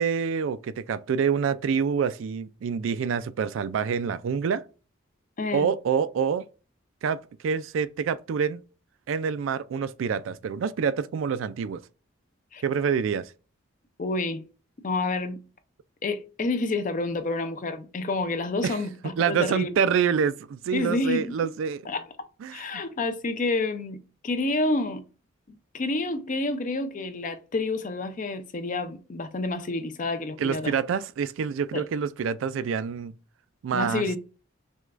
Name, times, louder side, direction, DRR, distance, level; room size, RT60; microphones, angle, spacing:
voice 1, 0.0-4.6 5.5-6.5 7.0-8.6 9.1-11.8 12.6-13.3 18.6-18.8 19.2-21.8 22.4-22.7 30.4-33.1 33.6-34.1, right 6 dB, 75° right, 0.3 m, -26 dB
voice 2, 5.4-5.7 12.5-12.6 14.0-14.4 14.8-15.4 16.0-19.7 20.7-21.5 21.9-22.1 22.5-25.0 25.5-30.7 31.7-31.8 33.7-34.2, left 2 dB, 40° left, 0.5 m, -29 dB
6.1 x 2.2 x 2.4 m
head